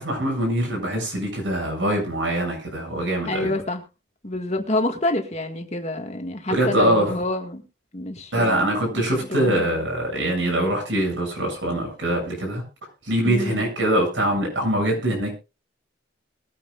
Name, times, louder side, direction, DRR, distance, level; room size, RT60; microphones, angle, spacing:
voice 1, 0.0-3.5 6.5-7.1 8.3-12.6 13.1-15.3, right 1 dB, 80° right, 1 dB, 7.5 m, -23 dB
voice 2, 3.3-3.8 4.2-7.6 7.9-9.7 13.2-13.6, left 1 dB, 35° left, 4 dB, 1.9 m, -28 dB
22.5 x 9.5 x 2.5 m, 0.30 s
head